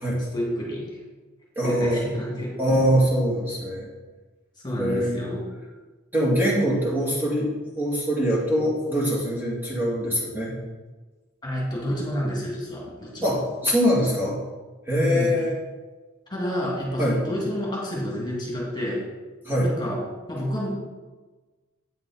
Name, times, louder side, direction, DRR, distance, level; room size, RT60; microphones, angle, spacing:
voice 1, 0.3-1.0 1.6-2.6 4.6-5.5 11.4-13.3 15.0-15.4 16.3-19.1 19.6-20.7, equal, 20° left, -4 dB, 2.3 m, -29 dB
voice 2, 1.6-2.1 2.6-3.9 4.8-5.2 6.1-10.6 13.2-14.4 14.9-15.5 17.0-17.2 19.4-19.7, equal, 10° right, -6 dB, 2.2 m, -23 dB
9.0 x 5.9 x 5.4 m, 1.2 s
head